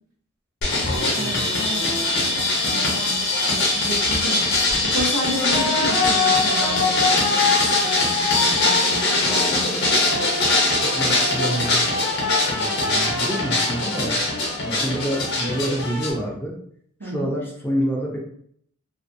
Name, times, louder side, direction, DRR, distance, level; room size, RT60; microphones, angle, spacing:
sound 1, 0.6-16.1, left 2 dB, 50° left, 0.7 m, -21 dB
voice 1, 1.0-7.5 7.8-9.9 17.0-17.3, equal, 80° right, -2 dB, 0.9 m, -32 dB
voice 2, 10.9-11.8 12.5-14.2 14.6-16.5 17.0-18.2, right 1 dB, 10° left, -3 dB, 0.5 m, -27 dB
2.5 x 2.3 x 2.5 m, 0.64 s
head